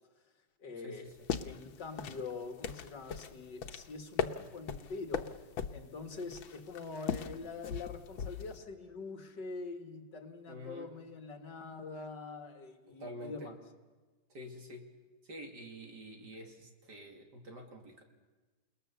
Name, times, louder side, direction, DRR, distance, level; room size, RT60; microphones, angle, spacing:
voice 1, 0.6-1.1 1.4-5.4 5.7-13.6, left 4 dB, 65° left, 5 dB, 2.3 m, -44 dB
sound 1, 1.1-8.6, left 7 dB, 90° left, 1.8 m, -39 dB
voice 2, 10.5-10.9 12.9-13.5 14.3-14.9 15.3-18.0, equal, 60° right, 2 dB, 3.2 m, -47 dB
29.5 x 19.0 x 6.9 m, 1.3 s
omnidirectional pair, 2.1 m